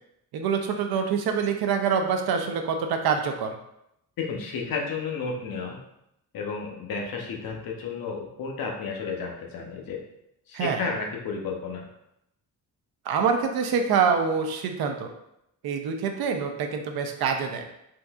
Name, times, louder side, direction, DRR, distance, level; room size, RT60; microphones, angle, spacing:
voice 1, 0.3-3.5 10.5-10.8 13.1-15.1 15.6-17.7, right 6 dB, 70° right, 4 dB, 0.5 m, -25 dB
voice 2, 4.2-5.8 6.3-10.0 10.5-11.9, left 4 dB, 65° left, 0 dB, 0.7 m, -32 dB
3.6 x 2.6 x 2.3 m, 0.81 s
cardioid pair, 130°, 38 cm